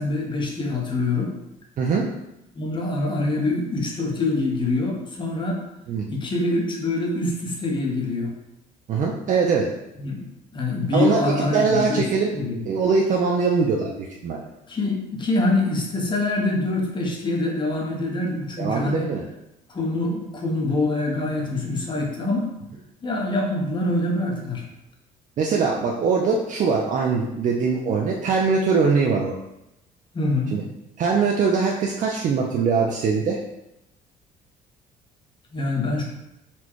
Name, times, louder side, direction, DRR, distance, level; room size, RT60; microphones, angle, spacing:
voice 1, 0.0-1.3 2.5-5.6 6.1-8.3 10.0-10.2 10.5-12.0 12.3-12.7 14.7-19.1 19.7-22.5 23.0-24.6 30.1-30.6 35.5-36.0, left 2 dB, 30° left, -1 dB, 1.0 m, -25 dB
voice 2, 8.9-9.7 10.9-11.2 11.5-12.4 12.7-14.4 18.6-19.2 25.4-29.3 30.5-30.6 31.0-33.4, right 5 dB, 50° right, -1 dB, 0.5 m, -22 dB
4.2 x 2.3 x 4.5 m, 0.88 s
cardioid pair, 110°, 17 cm